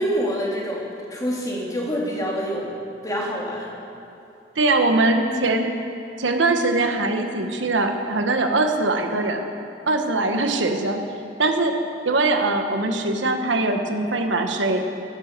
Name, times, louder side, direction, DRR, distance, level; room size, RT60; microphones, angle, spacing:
voice 1, 0.0-2.7 3.0-3.7, equal, 20° left, -3 dB, 2.8 m, -26 dB
voice 2, 4.6-5.7 6.2-9.5 9.9-11.0 11.4-11.7 12.0-14.8, right 2 dB, 80° right, 5 dB, 1.3 m, -21 dB
17.0 x 10.0 x 6.8 m, 2.9 s
head